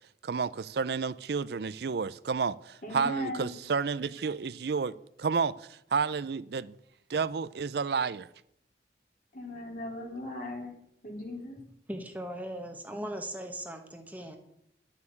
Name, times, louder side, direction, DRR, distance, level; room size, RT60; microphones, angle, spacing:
voice 1, 0.2-6.7 7.1-8.3, right 5 dB, 60° right, 0.5 m, -31 dB
voice 2, 2.8-3.6 9.3-10.8 11.0-11.6, left 1 dB, 50° left, 3.3 m, -38 dB
voice 3, 11.9-14.4, right 1 dB, 10° right, 1.1 m, -38 dB
11.0 x 7.1 x 9.6 m
head